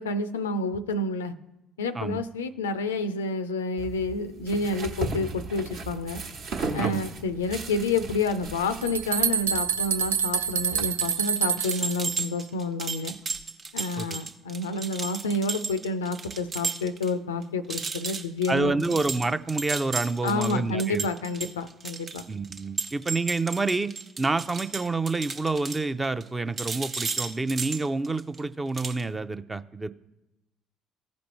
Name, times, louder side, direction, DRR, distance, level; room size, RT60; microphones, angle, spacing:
voice 1, 0.0-1.3 1.8-6.2 6.7-13.2 13.7-18.9 20.2-22.2, left 3 dB, 75° left, 12 dB, 0.4 m, -29 dB
sound 1, 3.8-10.8, right 3 dB, 60° right, 1.2 m, -36 dB
sound 2, 8.4-8.5 8.8-12.0, right 8 dB, 75° right, 0.4 m, -26 dB
sound 3, 11.0-17.1 17.4-17.5 17.7-26.3 26.6-28.4 28.7-29.0, right 4 dB, 40° right, 0.9 m, -34 dB
voice 2, 18.5-21.1 22.3-23.9 24.2-29.9, right 3 dB, 20° right, 11 dB, 0.5 m, -28 dB
15.5 x 5.2 x 3.0 m, 0.95 s
figure-of-eight pair, 50°, 0 cm